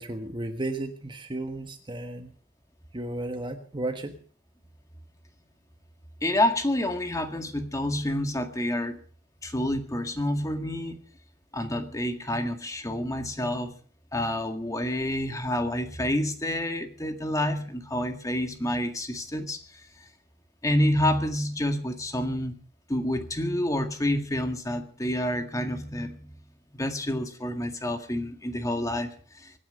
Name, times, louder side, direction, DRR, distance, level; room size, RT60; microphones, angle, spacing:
voice 1, 0.0-2.3 2.9-4.1, right 2 dB, 25° right, 7 dB, 1.4 m, -33 dB
voice 2, 6.2-8.9 9.4-11.0 11.5-13.7 14.1-19.8 20.6-22.6 22.9-26.3 26.7-29.6, left 1 dB, 15° left, 6 dB, 1.9 m, -28 dB
24.0 x 9.9 x 5.4 m, 0.43 s
head